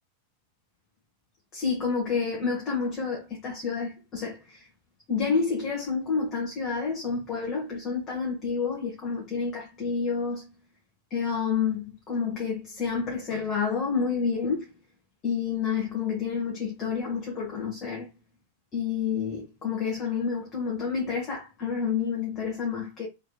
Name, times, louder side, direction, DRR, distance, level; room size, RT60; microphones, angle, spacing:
voice 1, 1.5-4.7 5.1-10.5 11.1-14.7 15.2-18.1 18.7-23.1, left 5 dB, 30° left, 1.2 m, -29 dB
3.3 x 3.3 x 2.2 m
figure-of-eight pair, 90°, 0 cm